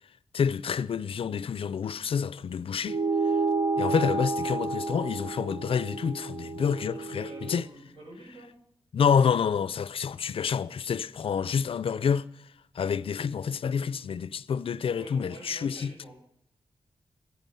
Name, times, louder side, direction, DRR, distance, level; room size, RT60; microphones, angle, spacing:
voice 1, 0.3-3.0 3.8-7.6 8.9-12.2 12.8-15.9, left 7 dB, 70° left, 0.4 m, -28 dB
sound 1, 2.9-7.7, right 3 dB, 50° right, 0.7 m, -30 dB
voice 2, 7.1-8.6 15.0-16.1, right 1 dB, 70° right, 7.8 m, -48 dB
14.5 x 12.5 x 5.6 m
cardioid pair, 75°, 10 cm